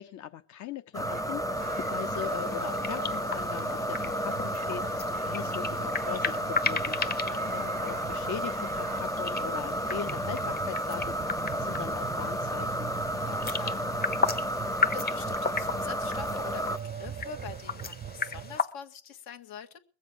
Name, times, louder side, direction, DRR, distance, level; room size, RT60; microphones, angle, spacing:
voice 1, 0.0-4.9 5.2-7.0 7.5-12.9, left 10 dB, 50° left, 0.9 m, -40 dB
sound 1, 0.9-16.8, equal, 10° left, 0.8 m, -32 dB
sound 2, 1.0-18.6, right 8 dB, 20° right, 0.6 m, -41 dB
sound 3, 1.6-18.6, left 4 dB, 25° left, 1.1 m, -36 dB
voice 2, 13.1-13.9 14.1-19.8, left 7 dB, 70° left, 2.0 m, -45 dB
21.5 x 7.6 x 6.1 m
supercardioid pair, 90°, 38 cm